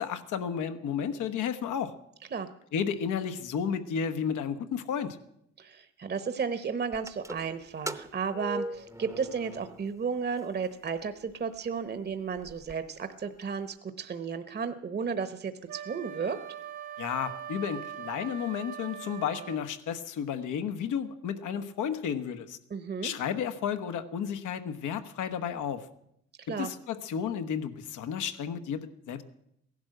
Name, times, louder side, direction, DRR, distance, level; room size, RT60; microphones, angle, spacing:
voice 1, 0.0-1.9 2.7-5.2 17.0-22.6 23.0-25.9 26.6-29.2, left 7 dB, 80° left, 9 dB, 1.2 m, -32 dB
voice 2, 5.6-16.4 22.7-23.1 26.4-26.7, right 6 dB, 35° right, 11 dB, 1.0 m, -33 dB
sound 1, 6.9-10.1 10.4-10.5 11.3-11.4 11.8-11.9 12.1-12.7, right 1 dB, 10° right, 0.8 m, -40 dB
Wind instrument woodwind instrument, 15.7-19.7, right 10 dB, 85° right, 1.6 m, -41 dB
16.0 x 11.5 x 7.8 m, 0.76 s
cardioid pair, 90°, 30 cm